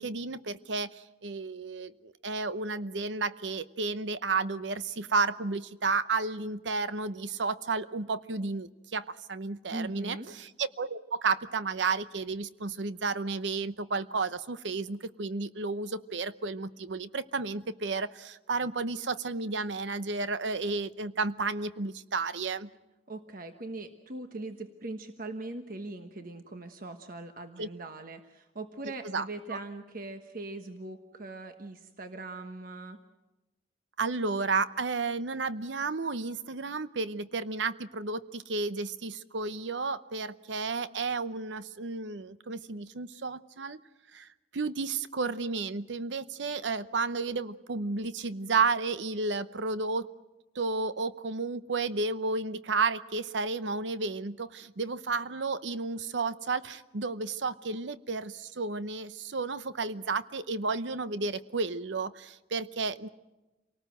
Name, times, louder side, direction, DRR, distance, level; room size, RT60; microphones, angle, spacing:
voice 1, 0.0-22.7 27.6-27.7 29.1-29.2 29.5-29.6 34.0-43.8 44.1-50.1 50.5-63.1, right 4 dB, 75° right, 14 dB, 0.8 m, -32 dB
voice 2, 9.7-10.3 23.1-33.0, right 2 dB, 50° right, 6 dB, 1.2 m, -41 dB
27.5 x 19.0 x 7.8 m, 1.1 s
head